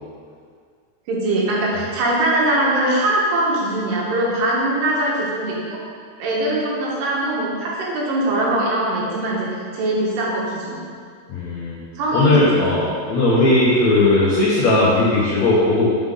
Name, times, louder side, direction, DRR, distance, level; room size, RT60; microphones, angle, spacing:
voice 1, 1.1-5.6 6.2-10.8 12.0-12.6, right 1 dB, 85° right, -4 dB, 3.4 m, -21 dB
voice 2, 11.3-11.8 12.1-15.9, left 2 dB, 85° left, -6 dB, 1.5 m, -17 dB
9.4 x 5.1 x 3.7 m, 2.1 s
omnidirectional pair, 4.6 m